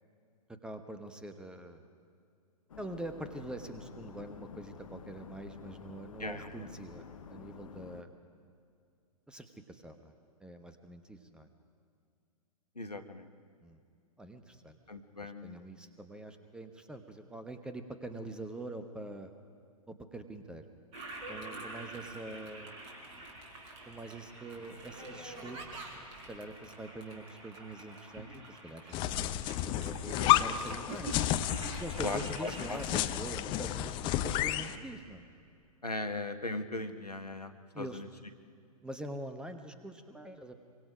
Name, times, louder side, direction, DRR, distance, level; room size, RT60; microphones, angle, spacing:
voice 1, 0.6-1.8 2.8-8.1 9.3-10.1 10.4-11.5 13.6-13.8 14.2-14.8 15.2-19.3 19.9-20.6 21.3-22.8 23.9-25.6 25.9-29.5 29.8-31.5 31.8-35.3 37.7-38.0 38.8-40.5, right 1 dB, 5° right, 8 dB, 1.1 m, -44 dB
sound 1, 2.7-8.0, left 6 dB, 60° left, 1.3 m, -49 dB
voice 2, 12.8-13.3 14.9-15.6 30.1-30.3 32.0-32.8 35.8-37.5 37.8-38.1, left 2 dB, 85° left, 8 dB, 1.5 m, -38 dB
Toilet flush, 20.9-33.0, right 2 dB, 30° right, 4.6 m, -47 dB
sound 2, 28.9-34.8, left 13 dB, 25° left, 0.8 m, -31 dB
25.0 x 24.0 x 5.1 m, 2.4 s
figure-of-eight pair, 110°, 20 cm